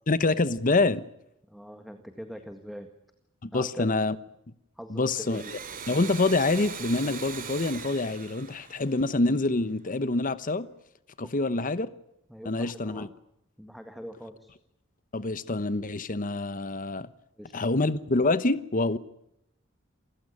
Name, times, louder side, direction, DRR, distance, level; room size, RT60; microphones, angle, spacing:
voice 1, 0.1-1.0 3.4-4.1 4.9-5.4 5.9-10.7 11.2-11.9 12.5-13.1 15.1-17.1 17.5-19.0, left 2 dB, 40° left, 1.0 m, -26 dB
voice 2, 1.5-2.9 3.5-3.9 4.7-5.5 11.2-11.3 12.3-13.1 13.6-14.5 17.4-17.5, equal, ahead, 1.8 m, -43 dB
Domestic sounds home sounds, 5.1-9.6, right 6 dB, 45° right, 2.6 m, -40 dB
28.5 x 16.0 x 9.9 m
head